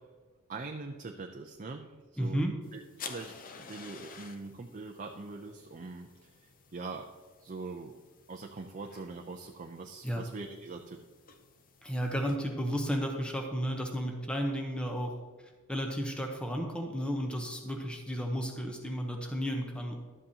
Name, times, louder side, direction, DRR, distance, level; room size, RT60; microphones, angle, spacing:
voice 1, 0.5-2.4 2.7-3.3 3.7-6.3 6.7-7.1 7.4-7.9 8.3-11.0, right 3 dB, 35° right, 3 dB, 0.5 m, -42 dB
voice 2, 2.2-2.5 10.0-10.2 11.8-15.1 15.7-19.9, equal, 5° left, 2 dB, 0.8 m, -33 dB
sound 1, 2.6-12.4, left 5 dB, 40° left, 0.6 m, -51 dB
12.0 x 7.9 x 2.8 m, 1.4 s
head